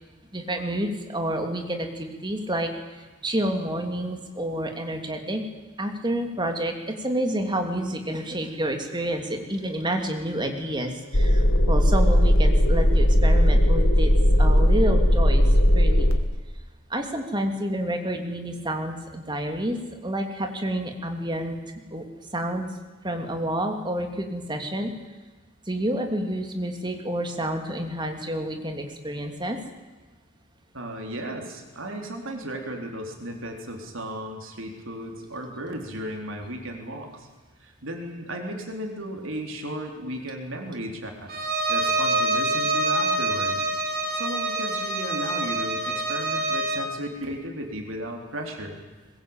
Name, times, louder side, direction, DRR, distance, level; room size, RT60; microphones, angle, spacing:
voice 1, 0.3-5.4 5.8-14.1 14.4-15.4 15.7-16.1 16.9-19.8 20.0-21.6 21.9-22.0 22.3-22.7 23.0-24.9 25.6-29.6, right 1 dB, 20° right, 4 dB, 2.8 m, -29 dB
sound 1, 11.1-16.2, equal, 70° left, 2.5 m, -18 dB
voice 2, 30.7-37.3 37.6-41.3 41.7-43.7 44.1-48.8, right 1 dB, 65° right, 2 dB, 4.0 m, -35 dB
Bowed string instrument, 41.3-46.9, right 2 dB, 45° right, 4.0 m, -26 dB
21.5 x 21.5 x 8.9 m, 1.2 s
head